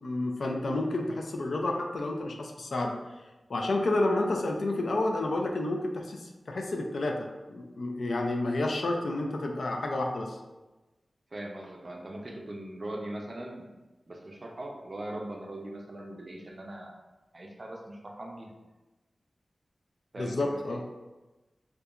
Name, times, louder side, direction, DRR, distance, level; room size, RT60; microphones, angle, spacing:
voice 1, 0.0-2.9 3.5-10.4 20.2-20.8, left 2 dB, 80° left, 2 dB, 0.3 m, -30 dB
voice 2, 11.3-13.7 14.1-17.0 17.3-18.5 20.1-20.8, right 1 dB, 45° right, 1 dB, 0.4 m, -40 dB
2.8 x 2.2 x 2.3 m, 1.1 s
wide cardioid pair, 75°, 0 cm